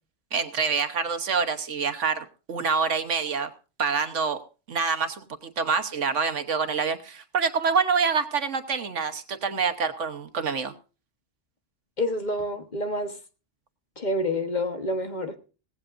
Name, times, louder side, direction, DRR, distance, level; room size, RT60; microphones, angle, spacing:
voice 1, 0.3-3.5 3.8-4.4 4.7-10.7, right 5 dB, 90° right, 8 dB, 1.5 m, -26 dB
voice 2, 12.0-13.1 14.0-15.4, left 1 dB, 40° left, 6 dB, 1.3 m, -28 dB
18.0 x 16.0 x 2.5 m, 0.35 s
omnidirectional pair, 1.2 m